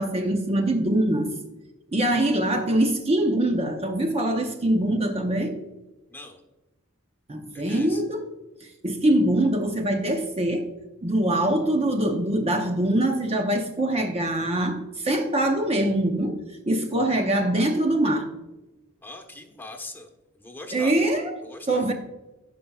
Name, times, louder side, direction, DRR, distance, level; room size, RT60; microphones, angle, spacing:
voice 1, 0.0-1.4 1.9-5.6 7.3-8.3 8.6-10.7 11.0-18.3 20.7-21.3 21.7-21.9, right 1 dB, 30° right, 0.7 m, -23 dB
voice 2, 6.1-6.4 7.5-8.0 19.0-20.1 20.3-21.1 21.4-21.9, left 2 dB, 10° left, 1.1 m, -41 dB
16.0 x 5.4 x 2.3 m
head